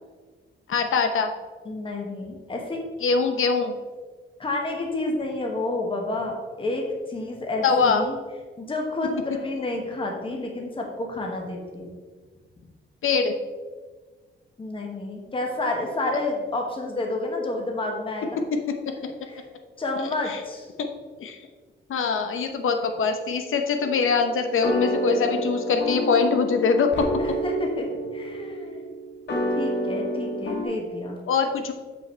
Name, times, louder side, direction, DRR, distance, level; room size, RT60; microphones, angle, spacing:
voice 1, 0.7-1.3 3.0-3.7 7.6-8.0 13.0-13.3 18.4-18.6 20.0-20.4 20.8-20.9 21.2-21.4 21.9-27.1 31.2-31.7, left 5 dB, 75° left, 6 dB, 0.9 m, -23 dB
voice 2, 1.6-2.8 4.4-8.2 8.6-11.9 14.6-18.4 19.3-19.4 19.8-20.7 25.1-25.2 27.2-28.8 29.6-31.2, left 2 dB, 25° left, 0 dB, 1.2 m, -30 dB
sound 1, 23.8-30.6, equal, 60° left, 1.5 m, -29 dB
7.4 x 5.6 x 4.4 m, 1.4 s
wide cardioid pair, 175°, 21 cm